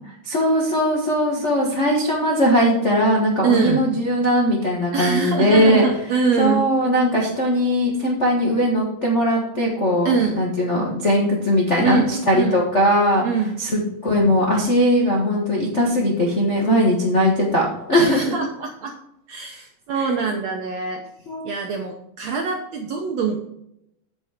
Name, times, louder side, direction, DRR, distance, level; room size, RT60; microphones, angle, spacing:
voice 1, 0.3-5.8 6.4-13.2 13.6-18.4 21.3-21.4, equal, 70° left, -3 dB, 0.6 m, -19 dB
voice 2, 3.4-3.8 4.9-6.6 10.0-10.4 11.8-12.6 13.2-13.6 17.9-18.9 19.3-21.0 21.4-23.4, right 5 dB, 75° right, 2 dB, 1.6 m, -23 dB
8.5 x 7.0 x 5.0 m, 0.79 s
omnidirectional pair, 4.2 m